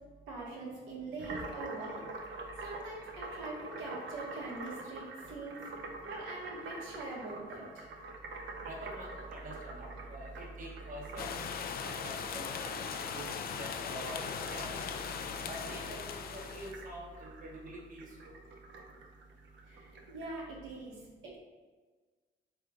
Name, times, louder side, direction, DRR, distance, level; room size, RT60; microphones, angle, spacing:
voice 1, 0.3-2.0 2.6-5.6 6.0-7.9 19.6-21.4, right 2 dB, 90° right, -5 dB, 1.3 m, -43 dB
sound 1, 1.2-20.3, right 2 dB, 70° right, 0.6 m, -46 dB
voice 2, 8.6-11.4 12.0-13.3 13.6-14.9 15.5-16.0 16.3-18.1, right 1 dB, 40° right, -3 dB, 0.9 m, -45 dB
sound 2, 11.2-16.7, left 6 dB, 50° left, 0.4 m, -39 dB
3.5 x 3.2 x 3.6 m, 1.4 s
cardioid pair, 90°, 20 cm